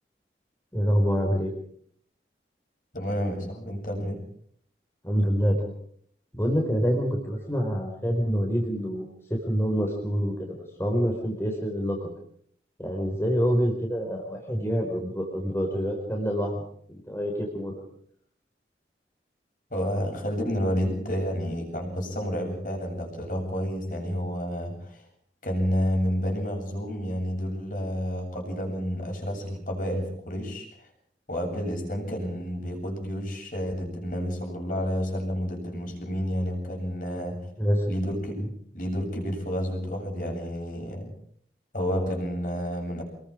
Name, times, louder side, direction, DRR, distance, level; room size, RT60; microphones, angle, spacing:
voice 1, 0.7-1.5 5.0-5.6 6.3-10.5 10.8-12.1 12.8-16.6 17.1-17.8 37.6-37.9 38.3-38.5, equal, 15° left, 0 dB, 4.3 m, -26 dB
voice 2, 2.9-4.2 19.7-25.0 25.4-30.7 31.3-37.4 37.9-38.4 38.7-41.1 41.7-43.0, equal, 50° left, 2 dB, 7.9 m, -30 dB
26.5 x 22.0 x 5.1 m, 0.63 s
head